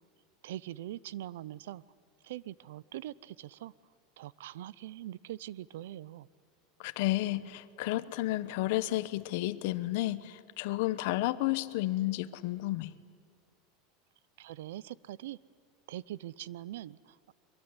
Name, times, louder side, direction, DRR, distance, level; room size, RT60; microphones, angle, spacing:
voice 1, 0.4-1.8 2.2-3.7 4.2-6.3 14.4-15.4 15.9-17.3, right 13 dB, 85° right, 0.6 m, -42 dB
voice 2, 6.8-12.9, left 17 dB, 65° left, 1.0 m, -32 dB
24.0 x 22.5 x 9.8 m
supercardioid pair, 150°, 0 cm